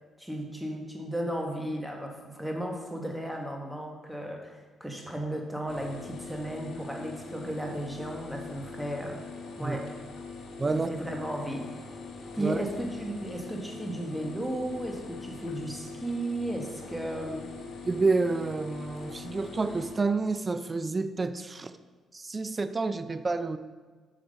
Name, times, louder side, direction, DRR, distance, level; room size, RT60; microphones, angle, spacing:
voice 1, 0.2-9.2 9.6-9.9 10.7-11.7 12.3-17.5, right 1 dB, ahead, 1 dB, 1.5 m, -35 dB
sound 1, 5.7-20.0, left 4 dB, 60° left, 1.4 m, -42 dB
voice 2, 17.8-21.7 22.1-23.6, right 3 dB, 30° right, 11 dB, 0.4 m, -29 dB
7.9 x 5.9 x 5.3 m, 1.4 s
cardioid pair, 90°, 0 cm